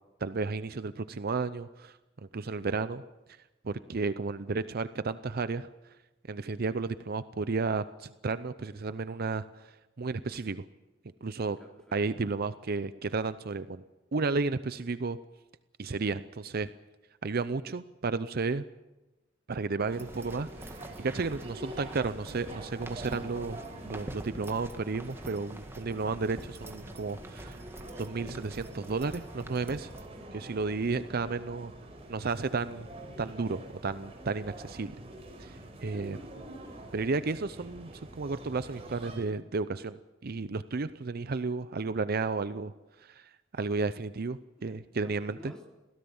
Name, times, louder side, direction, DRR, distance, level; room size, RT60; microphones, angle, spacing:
voice 1, 0.2-2.0 2.3-3.0 3.6-5.7 6.3-10.6 11.2-11.6 11.9-13.8 14.1-15.2 15.8-16.7 17.2-18.6 19.5-27.6 28.0-29.9 30.3-31.7 32.1-32.9 33.2-34.9 35.4-36.2 36.9-42.7 43.0-45.5, right 4 dB, 50° right, 13 dB, 0.6 m, -33 dB
voice 2, 11.4-12.0 35.8-36.1 36.5-36.9 44.6-45.7, equal, 5° left, 0 dB, 4.2 m, -53 dB
sound 1, 19.8-30.1, right 1 dB, 15° right, 1.6 m, -46 dB
sound 2, 19.9-39.2, right 1 dB, 30° right, 5.0 m, -46 dB
23.0 x 17.0 x 7.1 m, 1.1 s
head